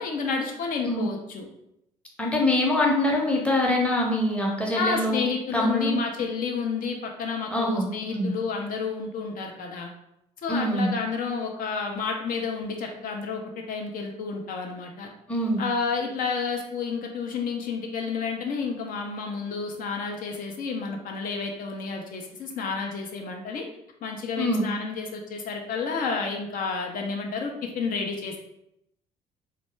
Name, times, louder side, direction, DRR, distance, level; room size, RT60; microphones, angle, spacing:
voice 1, 0.0-1.5 4.7-9.9 10.4-13.4 13.7-15.1 15.6-23.6 24.0-28.4, left 5 dB, 45° left, 2 dB, 0.4 m, -30 dB
voice 2, 2.2-5.2 5.5-6.0 7.5-7.9 8.1-8.3 10.5-10.9 15.3-15.6 24.4-24.6, left 1 dB, 5° left, -2 dB, 0.7 m, -24 dB
2.2 x 2.1 x 3.0 m, 0.82 s
figure-of-eight pair, 50°, 20 cm